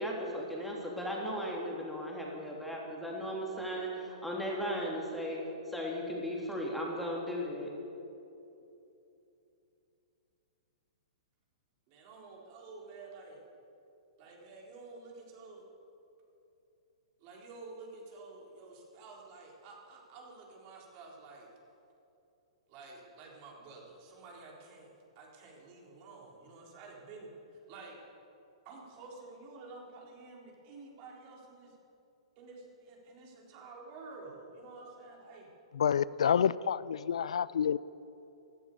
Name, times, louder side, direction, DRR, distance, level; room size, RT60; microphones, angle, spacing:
voice 1, 0.0-5.4 5.6-7.7, equal, ahead, -3 dB, 3.2 m, -36 dB
voice 2, 11.9-13.4 14.2-15.7 17.2-21.5 22.7-28.0 28.6-31.8 32.4-35.5 36.0-36.7, right 3 dB, 40° right, -1 dB, 3.9 m, -50 dB
voice 3, 35.7-37.8, left 8 dB, 75° left, 19 dB, 0.3 m, -28 dB
16.5 x 12.5 x 6.7 m, 2.8 s
hypercardioid pair, 120°, 3 cm